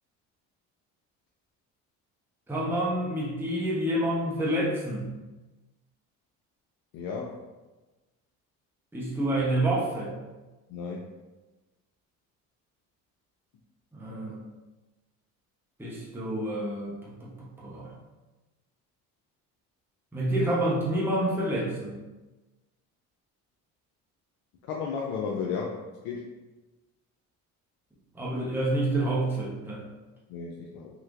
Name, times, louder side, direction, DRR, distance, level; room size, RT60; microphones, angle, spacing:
voice 1, 2.5-5.1 8.9-10.1 13.9-14.3 15.8-17.0 17.2-17.3 17.6-17.9 20.1-22.0 28.1-29.8, right 1 dB, 5° right, -5 dB, 0.8 m, -28 dB
voice 2, 6.9-7.5 10.7-11.0 24.6-26.3 30.3-30.9, left 5 dB, 75° left, -1 dB, 0.5 m, -34 dB
3.2 x 3.0 x 2.4 m, 1.1 s
supercardioid pair, 70°, 38 cm